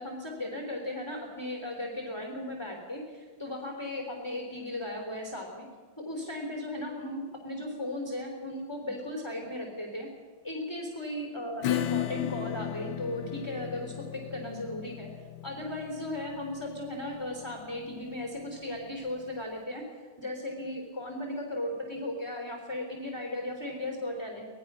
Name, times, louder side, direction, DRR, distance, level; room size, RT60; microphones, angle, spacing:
voice 1, 0.0-5.7 6.0-10.1 10.4-15.1 15.4-19.8 20.2-24.5, left 1 dB, 10° left, 1 dB, 3.5 m, -36 dB
Acoustic guitar / Strum, 11.6-18.8, left 12 dB, 70° left, 1.6 m, -36 dB
25.5 x 19.5 x 6.3 m, 1.5 s
omnidirectional pair, 2.3 m